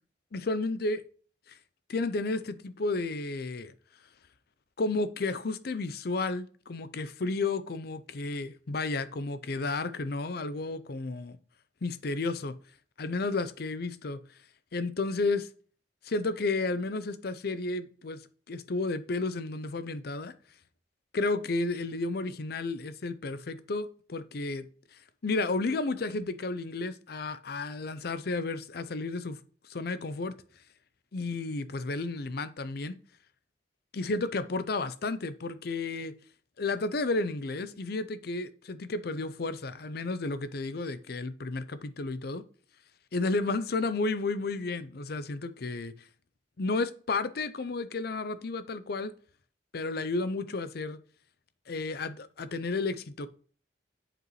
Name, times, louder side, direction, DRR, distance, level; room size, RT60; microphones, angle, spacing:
voice 1, 0.3-1.0 1.9-3.7 4.8-11.4 11.8-12.5 13.0-14.2 14.7-15.5 16.0-18.2 18.5-20.3 21.1-24.6 25.2-29.4 29.7-30.3 31.1-33.0 33.9-36.1 36.6-42.4 43.1-45.9 46.6-49.1 49.7-51.0 51.7-53.3, left 3 dB, 60° left, 0.6 m, -32 dB
7.7 x 5.0 x 3.1 m
head